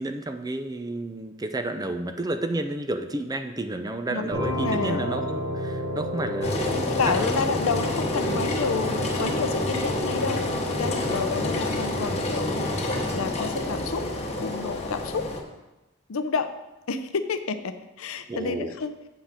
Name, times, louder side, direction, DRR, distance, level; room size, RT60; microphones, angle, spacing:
voice 1, 0.0-7.4 8.2-8.4 11.0-11.3 18.3-18.7, right 2 dB, 20° right, 8 dB, 0.5 m, -31 dB
voice 2, 4.1-5.0 6.7-14.1 14.4-15.3 16.1-16.5 16.9-19.0, left 4 dB, 75° left, 10 dB, 0.6 m, -30 dB
sound 1, 4.3-13.8, equal, 60° right, 2.1 m, -33 dB
Engine, 6.4-15.4, left 2 dB, 30° left, 1.1 m, -28 dB
8.1 x 5.7 x 5.1 m, 1.0 s
head